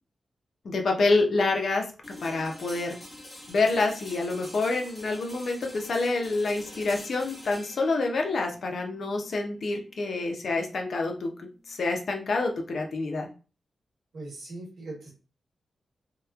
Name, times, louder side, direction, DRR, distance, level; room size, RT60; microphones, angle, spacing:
voice 1, 0.6-1.8 2.2-3.0 3.5-13.3, left 3 dB, 55° left, 3 dB, 0.5 m, -27 dB
sound 1, 2.0-11.9, left 1 dB, 25° left, 1.1 m, -47 dB
voice 2, 14.1-15.1, right 2 dB, 70° right, -2 dB, 1.2 m, -40 dB
2.8 x 2.1 x 2.3 m, 0.35 s
wide cardioid pair, 145°, 0 cm